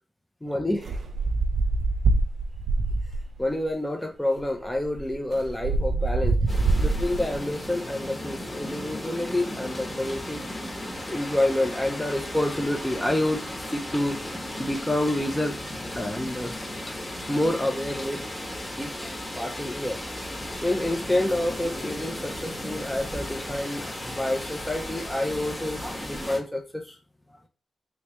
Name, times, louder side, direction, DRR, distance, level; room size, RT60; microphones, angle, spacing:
voice 1, 0.4-1.0 3.4-6.5 6.8-10.4 11.1-14.2 14.6-15.6 16.0-16.5 17.3-18.2 18.8-27.0, left 1 dB, 10° left, 2 dB, 0.6 m, -28 dB
sound 1, 0.8-3.4 4.4-4.5 4.7-7.4, right 3 dB, 70° right, 0.4 m, -25 dB
sound 2, 6.5-26.4, left 1 dB, 25° left, 1.2 m, -35 dB
3.2 x 3.2 x 3.0 m, 0.32 s
cardioid pair, 90°, 0 cm